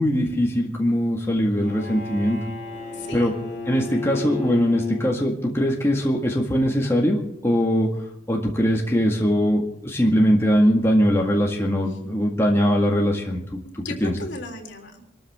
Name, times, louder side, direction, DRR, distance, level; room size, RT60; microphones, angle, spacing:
voice 1, 0.0-2.4 3.1-3.3 3.7-7.9 8.3-14.1, equal, 15° left, -1 dB, 1.9 m, -21 dB
Bowed string instrument, 1.5-5.7, left 3 dB, 45° left, 4.1 m, -34 dB
voice 2, 2.9-3.3 11.9-12.0 13.6-15.0, left 2 dB, 75° left, 1 dB, 3.5 m, -36 dB
26.0 x 13.5 x 3.7 m, 0.71 s
head